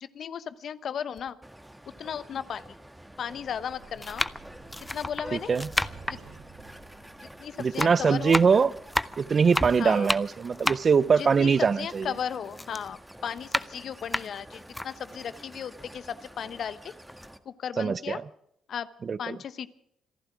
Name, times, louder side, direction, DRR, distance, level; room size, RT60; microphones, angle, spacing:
voice 1, 0.0-1.4 2.0-2.6 3.2-4.3 4.9-5.5 6.1-6.2 7.4-8.4 9.8-10.1 11.2-11.5 11.8-16.9 17.4-18.2 18.7-18.9 19.2-19.7, left 8 dB, 65° left, 0.9 m, -35 dB
sound 1, 1.2-1.3 2.2-2.3 3.2-3.5 4.0-7.3 7.6-12.2 12.5-14.9 15.4-15.5 15.8-16.8 17.1-17.3, left 1 dB, 10° left, 0.7 m, -32 dB
sound 2, 1.4-17.4, right 1 dB, 5° right, 1.6 m, -46 dB
sound 3, 2.7-10.6, right 5 dB, 75° right, 3.0 m, -53 dB
voice 2, 5.3-5.7 7.6-8.7 9.2-12.1 17.8-18.2 19.0-19.4, right 5 dB, 45° right, 0.6 m, -23 dB
26.5 x 11.5 x 4.8 m
supercardioid pair, 65°, 0 cm